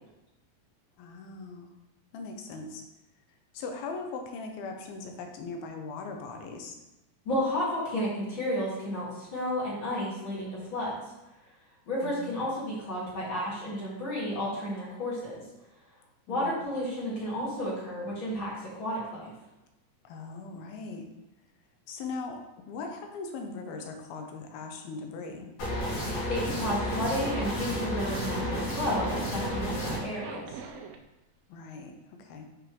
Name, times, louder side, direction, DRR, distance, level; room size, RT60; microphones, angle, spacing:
voice 1, 1.0-1.7 2.1-2.8 3.5-6.8 12.0-12.4 16.3-16.6 20.0-21.1 21.9-25.5 31.5-32.5, left 4 dB, 85° left, 3 dB, 2.7 m, -39 dB
voice 2, 7.2-11.0 11.9-15.4 16.3-19.3 26.3-30.5, equal, 35° left, -7 dB, 2.8 m, -32 dB
sound 1, 25.6-30.0, equal, 55° left, 4.0 m, -32 dB
Zipper (clothing), 26.8-31.0, right 6 dB, 80° right, 2.3 m, -43 dB
7.3 x 6.2 x 3.2 m, 0.96 s
omnidirectional pair, 4.4 m